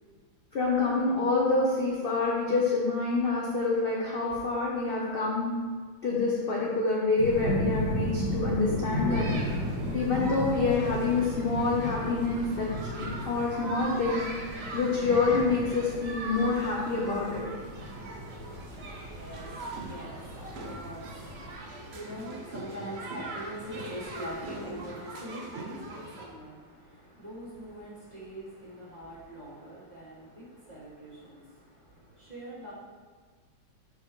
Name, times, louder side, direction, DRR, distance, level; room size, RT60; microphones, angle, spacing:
voice 1, 0.5-5.5 6.0-9.3 9.9-12.7 13.0-14.2 14.7-17.4, left 3 dB, 55° left, -4 dB, 0.6 m, -27 dB
sound 1, 7.2-21.6, equal, 80° right, 2.5 m, -35 dB
sound 2, 9.1-26.3, right 2 dB, 65° right, 0.6 m, -41 dB
voice 2, 19.2-32.7, equal, 25° right, -8 dB, 1.5 m, -43 dB
7.5 x 5.5 x 3.1 m, 1.5 s
omnidirectional pair, 2.2 m